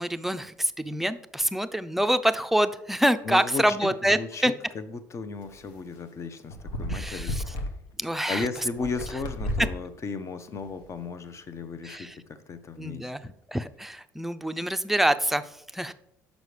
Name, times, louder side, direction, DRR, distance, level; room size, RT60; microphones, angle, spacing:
voice 1, 0.0-4.5 6.9-7.4 8.0-8.5 11.8-12.2 12.8-15.9, right 1 dB, 5° right, 10 dB, 0.5 m, -26 dB
voice 2, 3.2-7.7 8.3-13.3, left 4 dB, 40° left, 11 dB, 0.7 m, -35 dB
sound 1, 5.5-5.7 6.5-7.7 8.6-9.8 10.5-10.9, equal, 75° left, 1.0 m, -33 dB
6.4 x 5.2 x 4.8 m, 0.76 s
hypercardioid pair, 60°, 7 cm